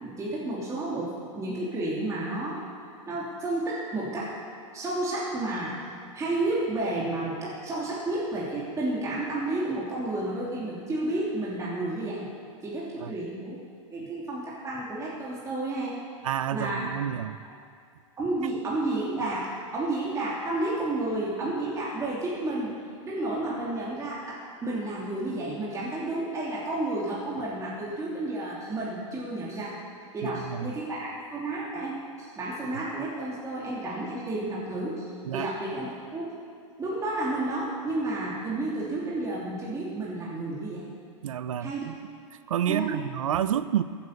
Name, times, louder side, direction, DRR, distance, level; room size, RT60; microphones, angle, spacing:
voice 1, 0.0-2.6 3.1-4.3 4.7-5.7 6.1-12.3 12.6-13.6 13.9-16.0 16.5-16.9 17.4-17.5 18.2-22.7 23.0-29.8 30.1-36.3 36.8-40.9 41.6-41.8 42.7-43.0, right 2 dB, 20° right, -6 dB, 3.1 m, -31 dB
voice 2, 16.2-17.4 30.2-30.7 35.3-35.5 41.2-42.0 42.5-43.8, right 10 dB, 85° right, 14 dB, 0.6 m, -29 dB
14.0 x 8.9 x 8.2 m, 2.1 s
hypercardioid pair, 120°, 17 cm